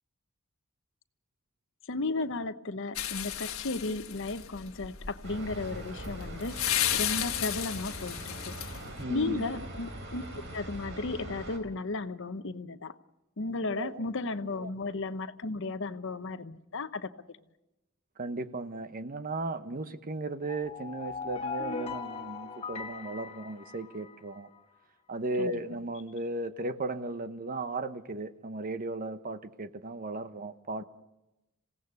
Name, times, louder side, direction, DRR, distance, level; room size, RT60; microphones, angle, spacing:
voice 1, 1.9-6.5 6.9-8.2 8.4-8.5 9.1-10.2 10.5-12.9 13.4-17.1 25.4-25.5, left 3 dB, 65° left, 0.9 m, -34 dB
sound 1, 3.0-9.0, left 11 dB, 80° left, 1.4 m, -34 dB
sound 2, 5.2-11.6, right 1 dB, 65° right, 4.1 m, -42 dB
voice 2, 9.0-9.7 13.6-14.0 14.5-14.7 18.2-24.5 25.1-30.8, right 2 dB, 40° right, 1.0 m, -36 dB
sound 3, 20.4-24.4, left 5 dB, 30° left, 1.3 m, -39 dB
27.5 x 17.0 x 6.8 m
head